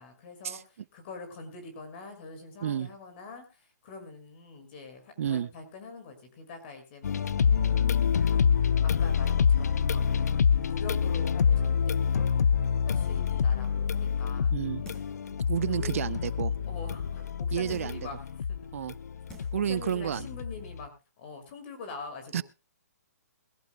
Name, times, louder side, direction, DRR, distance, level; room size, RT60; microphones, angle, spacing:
voice 1, 0.0-7.3 8.8-10.3 10.7-12.3 12.9-14.9 15.6-16.1 16.6-18.2 18.5-18.7 19.5-20.9 21.2-22.4, left 3 dB, 35° left, 7 dB, 5.9 m, -44 dB
voice 2, 5.2-5.5 14.5-14.8 15.5-16.5 17.5-18.0 18.7-19.0 19.5-20.3 22.3-22.4, right 9 dB, 55° right, 19 dB, 0.7 m, -30 dB
sound 1, 7.0-20.9, left 7 dB, 70° left, 0.7 m, -27 dB
sound 2, 14.8-15.3 15.8-15.9 17.7-18.1 18.8-18.9 19.3-19.7 20.1-20.2, equal, 10° left, 6.1 m, -49 dB
21.5 x 15.5 x 2.2 m, 0.28 s
hypercardioid pair, 155°, 9 cm